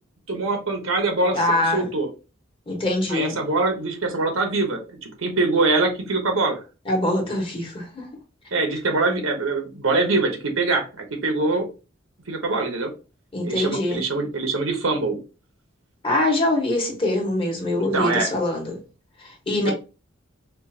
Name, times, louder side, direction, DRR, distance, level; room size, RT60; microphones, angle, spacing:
voice 1, 0.3-1.4 1.7-2.1 3.1-6.6 8.5-11.7 12.3-12.9 13.4-15.2 17.7-18.3, right 3 dB, 85° right, 1.1 m, -23 dB
voice 2, 1.3-1.9 2.7-3.3 6.8-8.1 13.3-14.0 16.0-18.8 19.2-19.7, left 1 dB, 25° left, 1.2 m, -23 dB
4.5 x 2.5 x 2.7 m
head